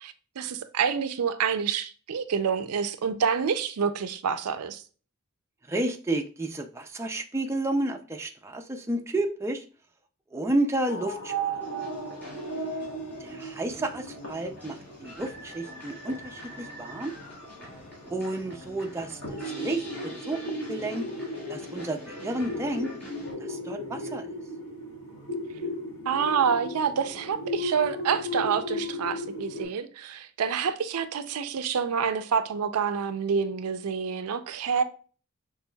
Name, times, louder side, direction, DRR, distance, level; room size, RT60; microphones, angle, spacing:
voice 1, 0.0-4.8 26.1-34.8, right 6 dB, 90° right, 0.4 m, -27 dB
voice 2, 5.7-9.6 10.3-11.3 13.2-17.1 18.1-20.4 20.7-21.1 21.5-22.9 23.4-24.2, right 2 dB, 10° right, 0.3 m, -31 dB
sound 1, 10.9-29.6, equal, 65° left, 1.4 m, -36 dB
sound 2, 11.6-23.3, equal, 5° left, 2.0 m, -46 dB
6.1 x 3.2 x 2.2 m
head